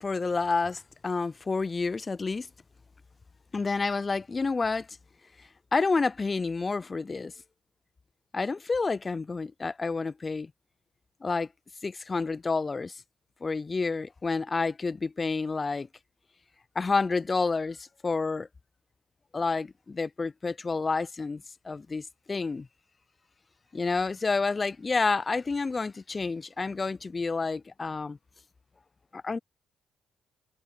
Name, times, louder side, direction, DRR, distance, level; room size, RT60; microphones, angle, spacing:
voice 1, 0.0-2.5 3.5-5.0 5.4-7.3 8.3-10.5 11.2-11.5 11.8-13.0 13.4-15.9 16.8-18.5 19.3-22.7 23.7-28.2 29.1-29.4, left 4 dB, 30° left, 0.3 m, -29 dB
cardioid pair, 90°, 0 cm